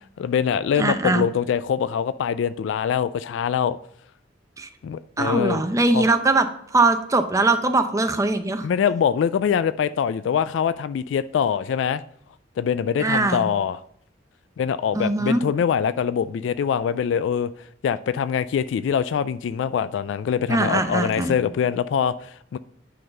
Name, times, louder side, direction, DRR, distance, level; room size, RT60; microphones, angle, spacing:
voice 1, 0.2-3.8 4.8-5.7 5.9-6.1 8.6-12.0 12.6-13.8 14.6-17.5 17.8-22.6, left 7 dB, 75° left, 0.3 m, -24 dB
voice 2, 0.8-1.2 4.6-4.7 5.2-6.5 6.7-8.7 13.0-13.4 14.9-15.4 20.5-21.4, right 2 dB, 15° right, 0.6 m, -21 dB
9.2 x 4.0 x 5.4 m
head